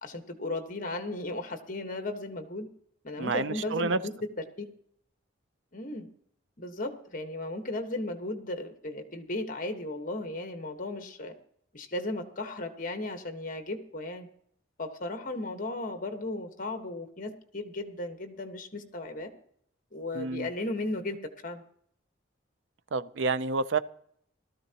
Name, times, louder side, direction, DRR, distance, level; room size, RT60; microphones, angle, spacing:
voice 1, 0.0-2.7 3.0-4.0 4.6-4.7 5.7-6.1 6.6-11.3 11.7-14.3 14.8-19.3 19.9-21.2 21.4-21.6, left 2 dB, 45° left, 1.4 m, -35 dB
voice 2, 3.2-4.0 20.1-20.5 22.9-23.8, right 4 dB, 70° right, 0.5 m, -29 dB
18.0 x 13.5 x 2.9 m
head